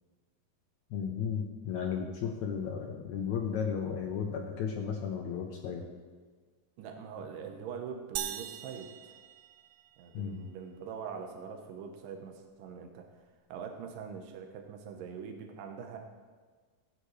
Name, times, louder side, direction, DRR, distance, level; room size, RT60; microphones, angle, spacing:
voice 1, 0.9-5.8 10.1-10.4, left 7 dB, 70° left, 2 dB, 1.8 m, -34 dB
voice 2, 6.8-9.2 10.0-13.1 13.5-16.0, right 6 dB, 75° right, 3 dB, 2.7 m, -43 dB
sound 1, 8.2-10.1, right 11 dB, 90° right, 1.7 m, -40 dB
15.0 x 9.0 x 3.2 m, 1.5 s
omnidirectional pair, 4.2 m